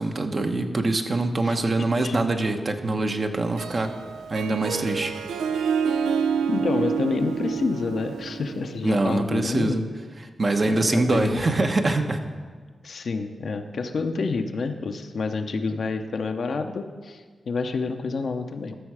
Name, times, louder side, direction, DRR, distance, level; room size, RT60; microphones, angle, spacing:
voice 1, 0.0-4.0 4.3-5.1 8.8-9.9 10.4-12.2, right 2 dB, 50° right, 5 dB, 1.0 m, -24 dB
Harp, 3.4-9.0, right 6 dB, 90° right, 0.4 m, -28 dB
voice 2, 6.5-9.8 10.6-11.4 12.8-18.8, left 4 dB, 70° left, 6 dB, 0.7 m, -28 dB
13.5 x 6.3 x 4.8 m, 1.5 s
supercardioid pair, 40°, 0 cm